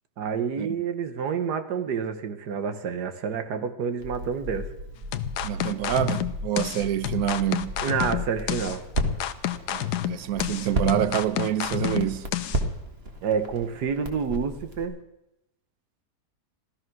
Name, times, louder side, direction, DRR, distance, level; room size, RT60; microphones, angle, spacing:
voice 1, 0.2-4.7 7.8-8.8 13.2-15.0, right 6 dB, 90° right, 1.7 m, -28 dB
Crackle, 4.0-14.8, right 1 dB, 40° right, 2.0 m, -34 dB
sound 1, 5.1-12.6, left 13 dB, 80° left, 1.3 m, -30 dB
voice 2, 5.4-7.7 9.7-12.3, right 11 dB, 65° right, 1.2 m, -27 dB
15.5 x 13.5 x 6.2 m
omnidirectional pair, 1.7 m